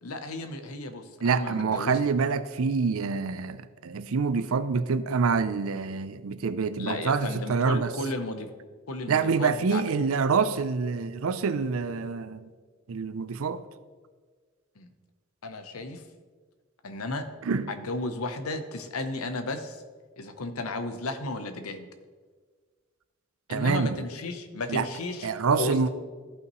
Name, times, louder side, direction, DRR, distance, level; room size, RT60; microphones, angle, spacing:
voice 1, 0.0-2.0 6.8-8.5 8.9-9.8 14.8-14.9 15.4-16.0 16.8-17.2 17.7-19.8 20.2-21.9 23.5-25.3 25.6-25.9, left 2 dB, 80° left, 0.8 m, -34 dB
voice 2, 1.2-7.9 9.1-12.5 12.9-13.6 17.4-17.7 23.5-24.0 24.7-24.9 25.2-25.9, right 5 dB, 70° right, 0.5 m, -26 dB
14.5 x 5.7 x 3.1 m
head